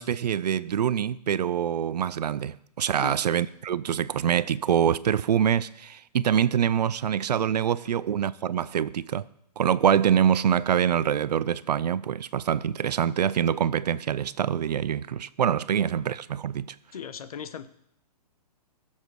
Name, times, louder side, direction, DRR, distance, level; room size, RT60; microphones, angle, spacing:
voice 1, 0.0-9.2 9.6-16.7, right 9 dB, 80° right, 0.6 m, -25 dB
voice 2, 16.9-17.7, left 7 dB, 60° left, 1.1 m, -38 dB
20.5 x 7.3 x 4.8 m
hypercardioid pair, 160°, 21 cm